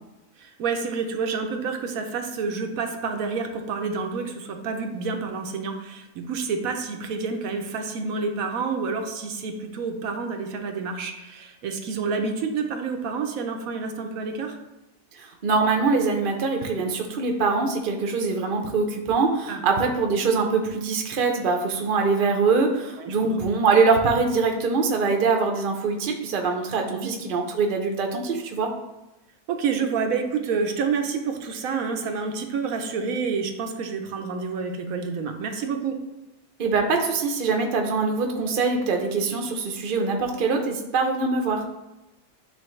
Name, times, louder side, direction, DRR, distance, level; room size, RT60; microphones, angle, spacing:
voice 1, 0.4-14.6 19.5-19.6 23.0-23.3 26.9-27.1 29.5-36.0, right 5 dB, 80° right, 4 dB, 1.1 m, -28 dB
voice 2, 15.2-28.7 36.6-41.6, right 4 dB, 45° right, 3 dB, 0.8 m, -23 dB
9.4 x 3.5 x 3.1 m, 1.0 s
omnidirectional pair, 1.5 m